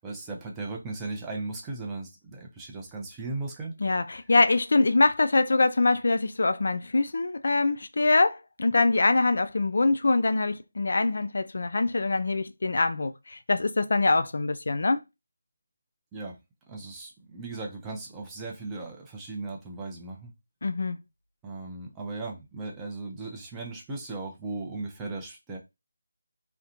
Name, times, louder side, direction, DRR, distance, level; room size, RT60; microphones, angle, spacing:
voice 1, 0.0-3.7 16.1-16.4 16.7-20.3 21.4-25.6, right 3 dB, 10° right, 0.4 m, -37 dB
voice 2, 3.8-15.0 20.6-21.0, left 3 dB, 60° left, 0.3 m, -24 dB
2.4 x 2.1 x 2.7 m
figure-of-eight pair, 165°, 0 cm